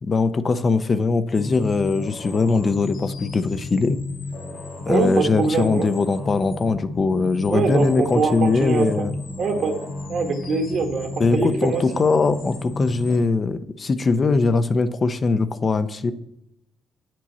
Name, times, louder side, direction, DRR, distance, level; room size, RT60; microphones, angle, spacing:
voice 1, 0.0-4.0 4.9-9.1 11.2-16.1, left 4 dB, 35° left, 11 dB, 0.6 m, -21 dB
sound 1, 1.3-13.2, left 2 dB, 75° left, 1.6 m, -33 dB
voice 2, 4.9-5.9 7.5-9.1 9.4-12.0, right 4 dB, 60° right, 5 dB, 1.6 m, -24 dB
8.1 x 7.5 x 4.2 m, 0.80 s
cardioid pair, 90°, 0 cm